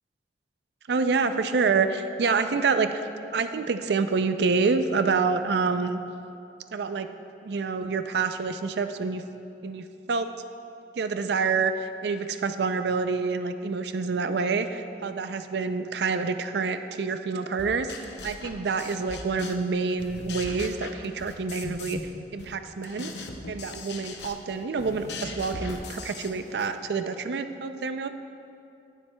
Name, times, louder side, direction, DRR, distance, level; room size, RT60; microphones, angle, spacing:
voice 1, 0.9-3.1 3.3-6.0 6.7-7.1 7.4-9.2 9.6-10.3 11.0-22.0 22.3-28.1, right 4 dB, 70° right, 9 dB, 0.4 m, -27 dB
sound 1, 17.6-19.7 20.0-22.1 22.4-26.7, left 3 dB, 75° left, 0.7 m, -39 dB
18.0 x 7.3 x 2.2 m, 2.6 s
head